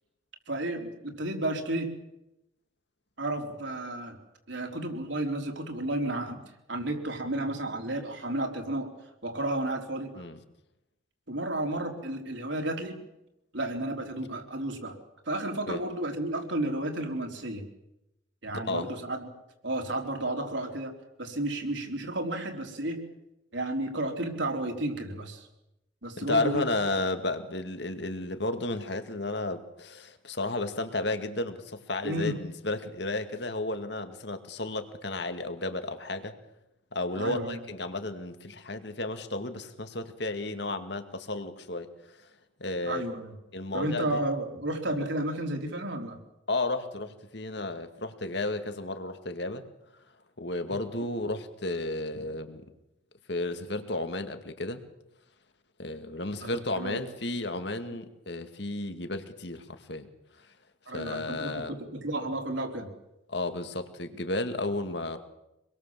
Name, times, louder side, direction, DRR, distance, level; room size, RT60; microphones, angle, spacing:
voice 1, 0.5-1.9 3.2-4.2 4.5-6.4 6.7-8.9 9.2-10.2 11.3-13.0 13.5-15.0 15.3-17.7 18.4-19.3 19.6-20.9 21.2-23.0 23.5-25.5 26.0-26.6 32.0-32.3 37.2-37.6 42.8-43.3 43.7-46.2 56.4-57.0 60.9-62.9, right 1 dB, 65° right, 3 dB, 4.2 m, -32 dB
voice 2, 18.7-19.0 26.2-36.3 36.9-41.9 42.6-43.0 43.5-44.2 46.5-49.7 50.4-52.6 53.3-54.8 55.8-60.1 60.9-61.7 63.3-65.2, left 2 dB, 55° left, 8 dB, 2.2 m, -33 dB
26.5 x 21.5 x 7.6 m, 0.89 s
head